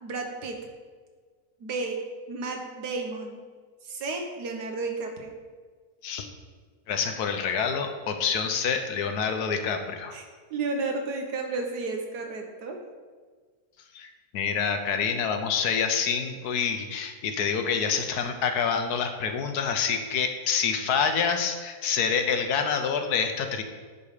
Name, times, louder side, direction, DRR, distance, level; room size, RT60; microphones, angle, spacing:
voice 1, 0.0-0.6 1.6-2.0 2.3-3.4 3.8-5.3 10.1-10.2 10.5-12.8, right 3 dB, 85° right, 3 dB, 1.7 m, -32 dB
voice 2, 6.9-10.2 13.9-23.6, left 6 dB, 80° left, 6 dB, 1.3 m, -27 dB
9.4 x 5.4 x 4.9 m, 1.5 s
omnidirectional pair, 1.7 m